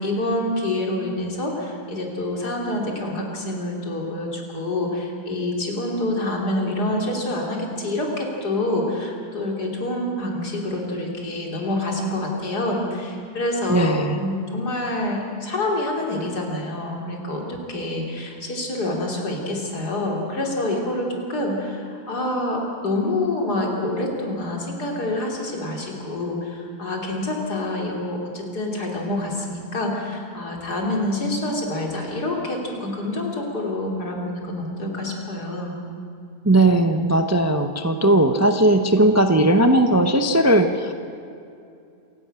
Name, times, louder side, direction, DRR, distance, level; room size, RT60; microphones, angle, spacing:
voice 1, 0.0-35.8, left 1 dB, 80° left, 0 dB, 3.7 m, -27 dB
voice 2, 13.7-14.2 36.4-40.9, right 1 dB, 15° right, 7 dB, 0.5 m, -18 dB
27.5 x 11.5 x 8.9 m, 2.5 s
omnidirectional pair, 1.7 m